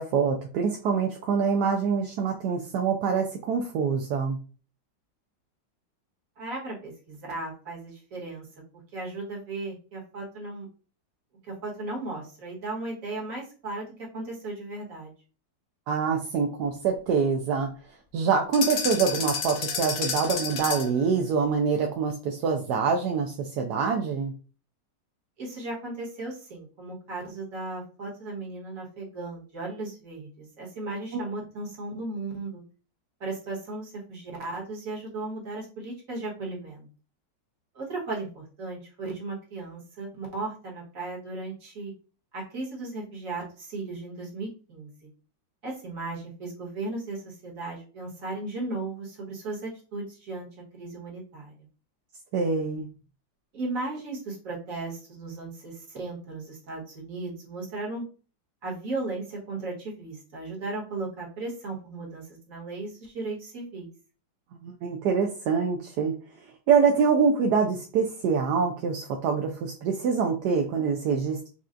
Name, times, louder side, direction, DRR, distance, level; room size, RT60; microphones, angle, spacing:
voice 1, 0.0-4.4 15.9-17.7 18.1-24.3 31.1-31.2 52.3-52.9 64.6-66.1 66.7-71.5, right 5 dB, 70° right, 2 dB, 1.0 m, -25 dB
voice 2, 6.4-8.5 8.9-10.7 11.4-15.1 25.4-32.6 33.2-36.9 37.7-41.9 42.3-44.9 45.6-50.5 50.7-51.5 53.5-58.0 58.6-63.9, right 2 dB, 50° right, -3 dB, 1.7 m, -36 dB
sound 1, 18.5-21.0, left 6 dB, 75° left, 0.6 m, -30 dB
5.5 x 2.4 x 2.5 m, 0.37 s
omnidirectional pair, 2.0 m